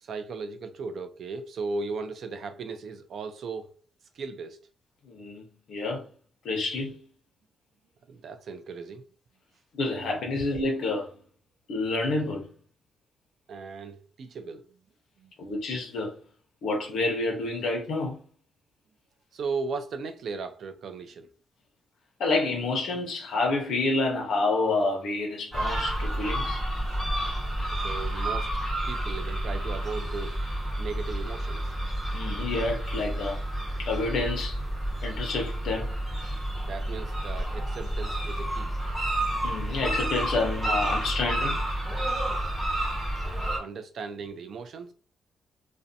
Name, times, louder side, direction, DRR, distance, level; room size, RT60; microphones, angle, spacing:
voice 1, 0.0-3.7 4.2-4.6 8.1-9.0 13.5-14.6 15.2-15.3 19.3-21.3 27.7-28.5 28.9-30.4 30.8-31.7 36.6-38.7 43.2-44.9, right 4 dB, 60° right, 0.4 m, -37 dB
voice 2, 5.1-5.4 5.7-6.0 6.4-7.0 9.7-11.1 11.7-12.5 15.4-16.1 16.6-18.2 22.2-26.6 32.1-33.4 33.8-34.6 35.0-35.9 39.4-41.6, left 3 dB, 75° left, 0.6 m, -28 dB
sound 1, 25.5-43.6, right 1 dB, 10° right, 1.1 m, -30 dB
2.5 x 2.1 x 2.6 m
cardioid pair, 120°, 0 cm